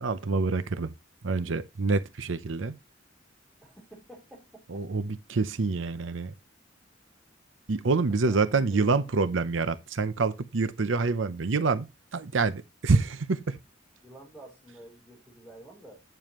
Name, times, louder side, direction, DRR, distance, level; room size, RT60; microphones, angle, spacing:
voice 1, 0.0-0.9 1.2-2.7 4.7-6.3 7.7-13.6, right 4 dB, 85° right, 0.7 m, -27 dB
voice 2, 3.6-4.5 8.1-9.0 12.9-13.0 14.0-16.0, right 1 dB, ahead, 3.6 m, -49 dB
9.2 x 6.9 x 3.0 m
head